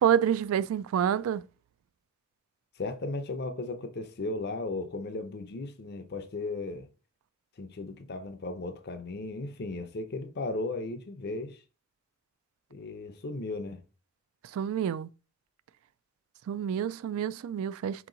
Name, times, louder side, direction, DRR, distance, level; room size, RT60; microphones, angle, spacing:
voice 1, 0.0-1.4 14.5-15.1 16.5-18.1, right 9 dB, 80° right, 0.3 m, -28 dB
voice 2, 2.8-6.9 7.6-11.6 12.7-13.8, left 2 dB, 50° left, 0.6 m, -36 dB
4.5 x 2.9 x 3.8 m
head